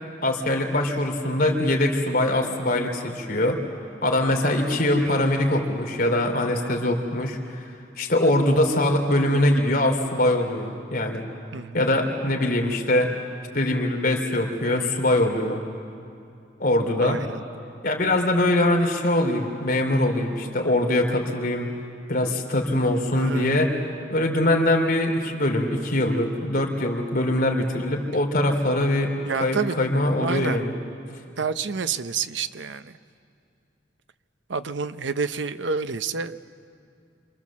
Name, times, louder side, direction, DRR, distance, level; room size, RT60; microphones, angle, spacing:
voice 1, 0.2-3.6 4.0-7.6 8.0-11.2 11.7-13.1 13.5-15.6 16.6-17.2 17.8-21.7 22.1-23.7 24.1-29.1 29.4-30.7, left 1 dB, 50° left, 2 dB, 3.1 m, -22 dB
voice 2, 17.0-17.4 23.1-23.7 29.2-29.7 30.2-30.6 31.4-32.9 34.5-36.4, right 5 dB, 75° right, 11 dB, 0.8 m, -29 dB
27.5 x 25.5 x 7.3 m, 2.6 s
head